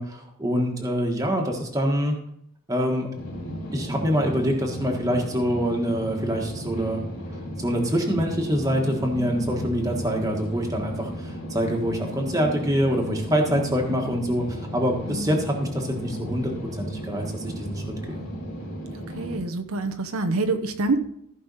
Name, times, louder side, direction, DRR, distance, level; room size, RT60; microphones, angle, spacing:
voice 1, 0.0-2.1 2.7-3.1 3.7-7.0 7.6-16.5 16.8-18.3, equal, 15° right, 1 dB, 1.5 m, -25 dB
sound 1, 3.1-19.4, equal, 85° left, 2.9 m, -34 dB
voice 2, 19.1-21.0, right 3 dB, 80° right, 6 dB, 0.8 m, -26 dB
15.0 x 5.4 x 4.1 m, 0.74 s
head